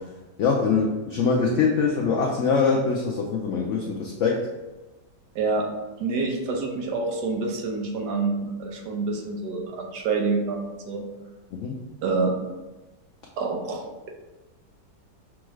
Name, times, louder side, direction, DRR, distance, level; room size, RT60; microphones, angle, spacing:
voice 1, 0.4-4.5 11.5-11.8, left 5 dB, 90° left, -1 dB, 0.6 m, -23 dB
voice 2, 5.3-5.7 6.0-11.1 12.0-12.4 13.4-14.1, right 3 dB, 75° right, 2 dB, 1.2 m, -27 dB
6.1 x 2.4 x 3.1 m, 1.1 s
omnidirectional pair, 1.9 m